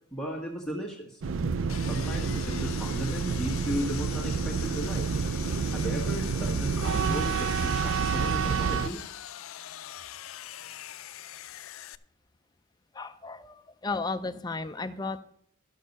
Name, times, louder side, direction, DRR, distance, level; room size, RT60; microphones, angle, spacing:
voice 1, 0.1-1.2 1.8-5.1 5.7-9.0, equal, 5° left, -2 dB, 1.5 m, -35 dB
sound 1, 1.2-8.9, right 5 dB, 65° right, 0.4 m, -29 dB
Sawing, 1.7-12.0, left 12 dB, 80° left, 0.4 m, -42 dB
voice 2, 12.9-15.2, left 3 dB, 20° left, 10 dB, 0.5 m, -34 dB
12.0 x 6.5 x 5.3 m, 0.64 s
head